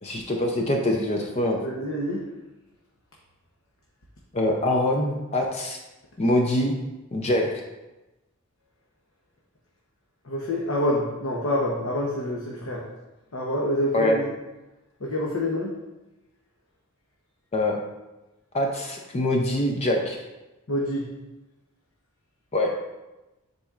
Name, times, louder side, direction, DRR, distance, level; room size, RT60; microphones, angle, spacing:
voice 1, 0.0-1.6 4.3-5.8 6.2-6.8 7.1-7.6 13.9-14.2 17.5-17.8 18.5-20.2 22.5-22.9, left 1 dB, 30° left, 1 dB, 0.5 m, -24 dB
voice 2, 1.6-2.2 10.2-12.9 13.3-14.3 15.0-15.7 20.7-21.1, left 1 dB, 65° left, -3 dB, 0.9 m, -27 dB
10.0 x 4.1 x 2.5 m, 1.0 s
head